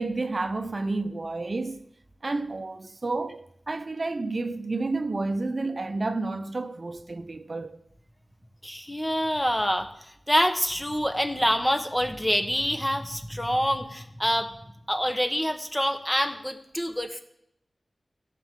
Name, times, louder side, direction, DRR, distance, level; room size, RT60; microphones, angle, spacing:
voice 1, 0.0-1.9 2.2-7.8, right 3 dB, 55° right, 0.6 m, -30 dB
voice 2, 8.6-9.9 10.3-14.5 14.9-17.2, equal, 10° left, 1.2 m, -26 dB
16.5 x 7.4 x 3.7 m
wide cardioid pair, 50°, 0 cm